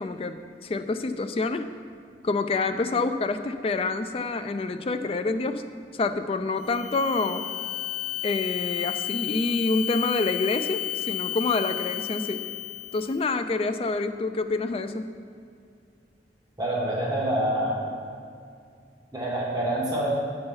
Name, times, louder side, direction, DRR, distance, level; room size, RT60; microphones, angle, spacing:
voice 1, 0.0-1.7 2.2-5.6 5.9-7.4 8.2-12.4 12.9-15.1, left 3 dB, 35° left, 9 dB, 0.3 m, -27 dB
sound 1, 6.6-13.2, left 13 dB, 85° left, 0.7 m, -32 dB
voice 2, 16.6-17.8 19.1-20.1, right 1 dB, 20° right, -5 dB, 1.4 m, -26 dB
7.9 x 5.4 x 5.5 m, 2.3 s
head